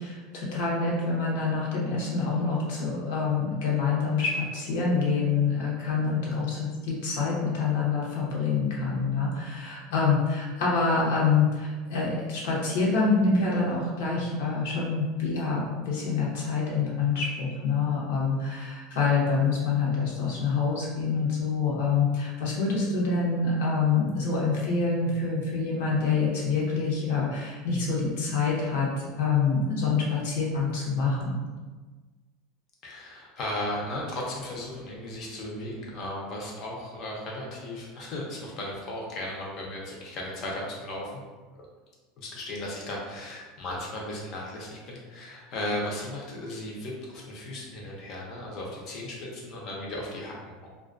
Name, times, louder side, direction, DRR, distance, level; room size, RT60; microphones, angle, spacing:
voice 1, 0.0-31.4, left 4 dB, 75° left, -4 dB, 0.8 m, -26 dB
voice 2, 32.8-41.1 42.2-50.7, left 1 dB, 45° left, -2 dB, 0.6 m, -36 dB
2.3 x 2.2 x 2.4 m, 1.4 s
supercardioid pair, 140°, 0 cm